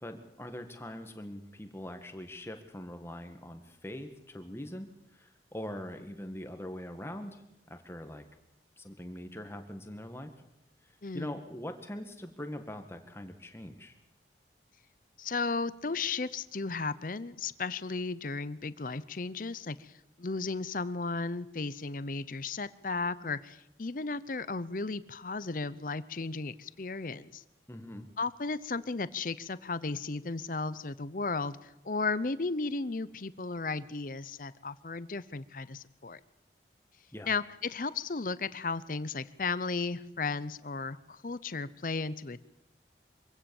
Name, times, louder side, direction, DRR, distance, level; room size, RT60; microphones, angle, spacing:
voice 1, 0.0-7.4 7.7-8.2 8.8-10.3 11.1-13.9 27.7-28.1 37.1-37.3, left 1 dB, 15° left, 6 dB, 1.8 m, -42 dB
voice 2, 11.0-11.4 15.2-19.9 20.2-27.4 28.2-36.2 37.3-42.4, left 4 dB, 50° left, 16 dB, 0.7 m, -35 dB
24.5 x 16.5 x 7.1 m, 0.87 s
head